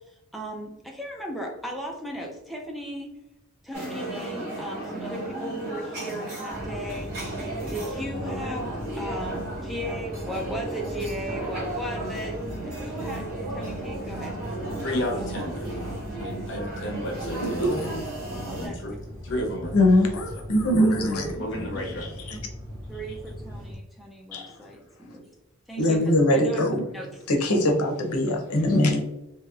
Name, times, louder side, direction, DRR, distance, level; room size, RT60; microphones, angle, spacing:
voice 1, 0.0-3.1 3.6-7.1 7.7-12.4 12.6-14.6 18.5-18.8 20.8-21.4 22.9-25.3 25.7-26.6 26.9-27.3, equal, ahead, 0 dB, 0.4 m, -36 dB
sound 1, 3.7-18.7, right 2 dB, 45° right, 1.0 m, -34 dB
sound 2, 6.5-23.8, equal, 65° right, 1.2 m, -39 dB
voice 2, 14.8-15.7 16.2-18.0 18.6-18.9 19.2-19.9 20.3-20.4 21.4-22.1, left 1 dB, 55° left, 0 dB, 0.8 m, -32 dB
voice 3, 17.4-17.9 19.7-21.3 22.3-22.4 24.3-24.5 25.8-26.9 27.3-29.0, left 1 dB, 90° left, 3 dB, 0.6 m, -22 dB
2.9 x 2.8 x 2.3 m, 0.92 s
head